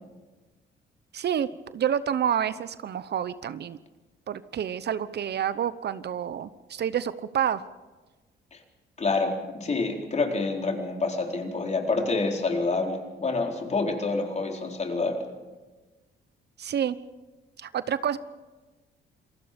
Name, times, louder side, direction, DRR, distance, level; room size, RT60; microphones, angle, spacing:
voice 1, 1.1-3.8 4.3-7.6 16.6-17.0 17.6-18.2, right 9 dB, 55° right, 15 dB, 0.9 m, -28 dB
voice 2, 9.0-15.2, left 3 dB, 35° left, 2 dB, 4.3 m, -27 dB
28.0 x 19.5 x 5.2 m, 1.2 s
cardioid pair, 90°, 20 cm